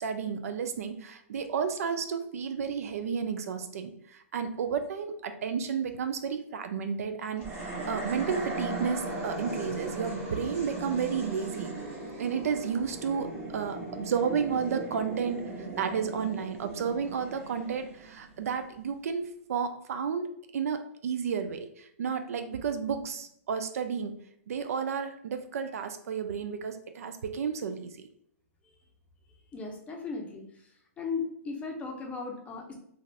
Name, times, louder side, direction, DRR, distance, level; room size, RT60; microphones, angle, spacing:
voice 1, 0.0-11.7 12.2-24.1 24.5-28.1, right 6 dB, 75° right, 8 dB, 0.4 m, -32 dB
sound 1, 7.4-18.7, right 2 dB, 30° right, 1.0 m, -38 dB
voice 2, 29.5-30.4 31.0-32.7, left 4 dB, 15° left, 1 dB, 0.6 m, -36 dB
2.5 x 2.5 x 3.1 m, 0.70 s
hypercardioid pair, 130°, 8 cm